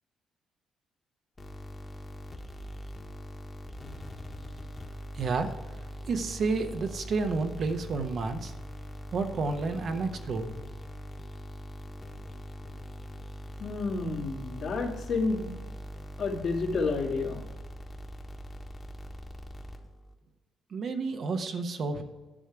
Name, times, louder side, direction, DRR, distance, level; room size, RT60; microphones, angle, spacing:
sound 1, 1.4-20.2, equal, 25° left, 1.3 m, -42 dB
voice 1, 5.1-5.5 6.1-8.5 9.1-10.5 20.7-22.0, right 4 dB, 55° right, 6 dB, 1.0 m, -30 dB
voice 2, 13.6-15.5 16.2-17.4, left 3 dB, 65° left, 0 dB, 2.0 m, -30 dB
10.0 x 6.5 x 4.7 m, 1.2 s
cardioid pair, 90°, 0 cm